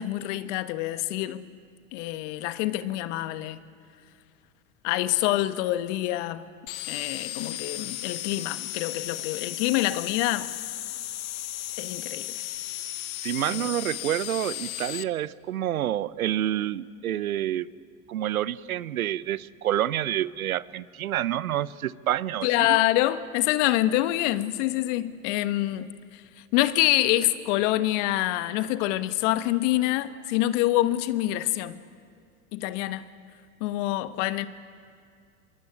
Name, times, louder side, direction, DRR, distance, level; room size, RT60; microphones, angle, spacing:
voice 1, 0.0-1.5 1.9-3.6 4.8-6.4 6.9-10.5 11.8-12.3 13.5-13.7 22.4-26.2 26.5-31.8 32.5-33.1 33.6-34.5, left 15 dB, 60° left, 1.4 m, -26 dB
sound 1, 6.7-15.0, left 14 dB, 75° left, 1.0 m, -35 dB
voice 2, 13.2-17.7 18.1-22.8, right 12 dB, 85° right, 0.8 m, -28 dB
25.0 x 22.0 x 9.6 m
hypercardioid pair, 95°, 41 cm